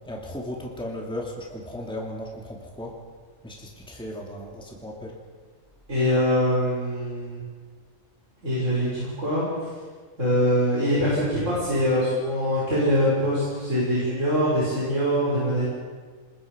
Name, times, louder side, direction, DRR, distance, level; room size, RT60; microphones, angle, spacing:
voice 1, 0.1-2.9 3.4-5.2, left 1 dB, 5° left, -1 dB, 2.6 m, -36 dB
voice 2, 5.9-7.4 8.4-9.7 10.2-15.7, equal, 65° right, -8 dB, 7.0 m, -23 dB
27.5 x 22.0 x 5.3 m, 1.5 s
omnidirectional pair, 1.4 m